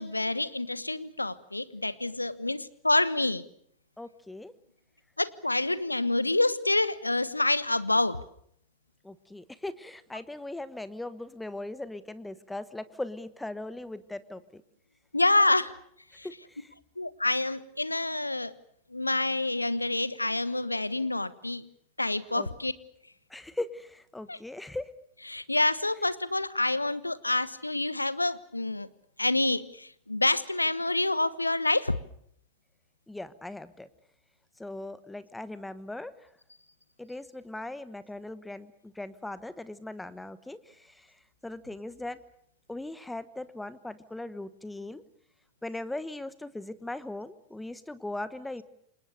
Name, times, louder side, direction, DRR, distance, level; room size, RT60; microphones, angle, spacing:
voice 1, 0.0-3.4 5.2-8.2 15.1-15.7 16.2-16.3 17.0-18.5 18.9-21.7 22.0-22.7 24.3-24.4 25.3-28.9 29.2-31.9, left 2 dB, 85° left, 17 dB, 1.2 m, -27 dB
voice 2, 4.0-4.5 9.0-14.6 16.2-16.7 22.3-22.5 23.3-24.9 33.1-33.9 34.6-36.1 37.0-41.1 41.4-42.2 42.7-45.0 45.6-48.6, left 2 dB, 5° left, 15 dB, 1.2 m, -39 dB
28.5 x 25.5 x 6.6 m, 0.71 s
figure-of-eight pair, 90°, 0 cm